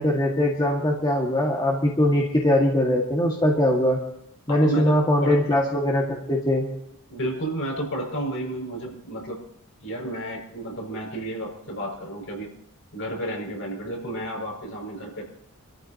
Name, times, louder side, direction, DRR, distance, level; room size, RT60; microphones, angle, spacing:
voice 1, 0.0-4.0 4.5-6.7, left 1 dB, 20° left, -2 dB, 1.7 m, -21 dB
voice 2, 4.5-5.4 7.1-9.4 9.8-12.5 12.9-15.2, right 1 dB, 60° left, 0 dB, 5.7 m, -31 dB
27.0 x 13.5 x 2.8 m, 0.71 s
head